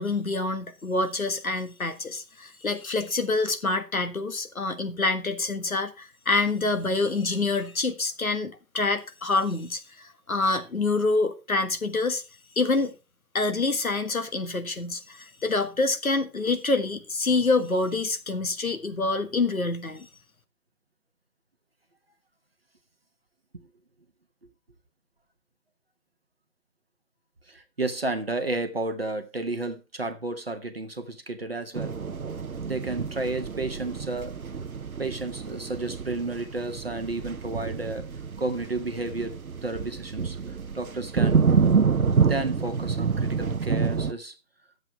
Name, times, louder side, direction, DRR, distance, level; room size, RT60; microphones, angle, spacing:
voice 1, 0.0-12.2 12.5-12.9 13.3-20.1, left 3 dB, 55° left, 1.6 m, -26 dB
voice 2, 27.5-32.0 32.6-34.3 35.0-38.1 38.4-39.3 39.6-41.5 42.3-44.4, right 2 dB, 35° right, 1.0 m, -32 dB
sound 1, 31.7-44.1, right 5 dB, 60° right, 0.8 m, -27 dB
11.5 x 7.8 x 4.4 m
figure-of-eight pair, 155°, 49 cm